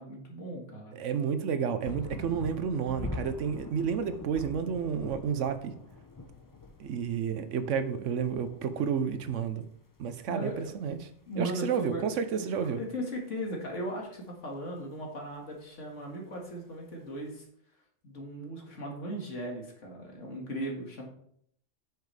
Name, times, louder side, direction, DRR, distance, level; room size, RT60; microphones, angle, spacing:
voice 1, 0.0-1.0 10.3-10.7 11.3-12.1 12.7-17.5 18.0-21.1, right 1 dB, 75° left, 0 dB, 2.2 m, -37 dB
voice 2, 0.9-5.7 6.8-9.7 10.0-11.1 11.4-12.8, right 7 dB, 75° right, 11 dB, 1.1 m, -31 dB
sound 1, 1.8-9.7 10.0-10.1 10.3-11.2 12.1-12.2, left 2 dB, 20° left, 0.6 m, -44 dB
8.2 x 6.4 x 3.3 m, 0.66 s
omnidirectional pair, 1.3 m